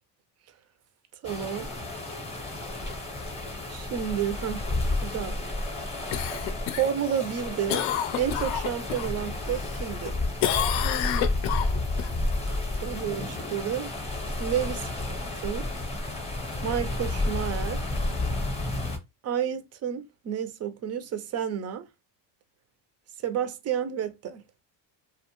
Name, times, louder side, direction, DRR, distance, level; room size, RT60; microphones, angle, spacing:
sound 1, 1.2-19.0, left 2 dB, 15° left, 0.7 m, -31 dB
voice 1, 1.2-1.7 3.7-4.7 5.0-5.4 6.8-7.9 8.2-10.1 12.8-14.0 14.4-14.8 15.4-15.7 16.6-17.8 19.2-21.9 23.2-24.4, right 9 dB, 35° right, 0.4 m, -30 dB
Cough, 6.1-9.1 9.5-10.1 10.4-12.1 16.5-16.6, left 10 dB, 70° left, 0.6 m, -29 dB
2.5 x 2.2 x 2.9 m
supercardioid pair, 100°, 49 cm